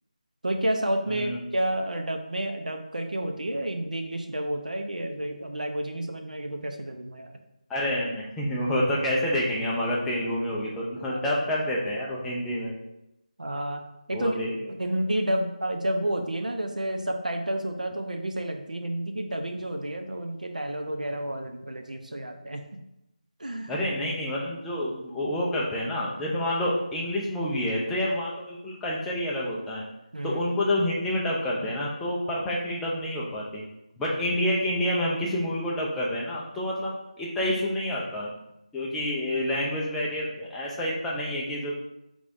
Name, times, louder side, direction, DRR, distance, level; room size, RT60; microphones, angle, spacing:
voice 1, 0.4-7.3 11.0-11.2 13.4-13.8 14.1-14.4 14.7-22.6 23.4-23.8 30.1-30.4, right 1 dB, 80° right, 4 dB, 0.6 m, -30 dB
voice 2, 1.1-1.4 7.7-12.7 14.1-14.5 23.7-29.8 30.2-33.6 34.0-38.3 38.7-41.8, left 1 dB, 5° left, -5 dB, 0.3 m, -28 dB
4.9 x 3.4 x 2.5 m, 0.87 s
figure-of-eight pair, 165°, 4 cm